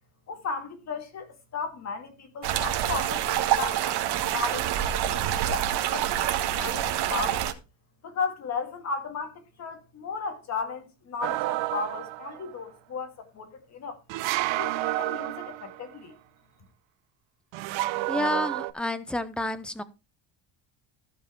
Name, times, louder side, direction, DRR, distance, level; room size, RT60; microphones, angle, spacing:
voice 1, 0.3-1.3 1.5-3.8 4.2-7.5 8.0-14.0 14.6-16.1, left 5 dB, 35° left, 2.1 m, -35 dB
sound 1, 2.4-7.5, right 11 dB, 60° right, 1.3 m, -27 dB
sound 2, 11.2-12.5 14.1-15.9 17.5-18.7, right 18 dB, 85° right, 0.8 m, -30 dB
voice 2, 18.1-19.8, left 1 dB, ahead, 0.5 m, -29 dB
14.5 x 5.4 x 4.5 m
cardioid pair, 175°, 44 cm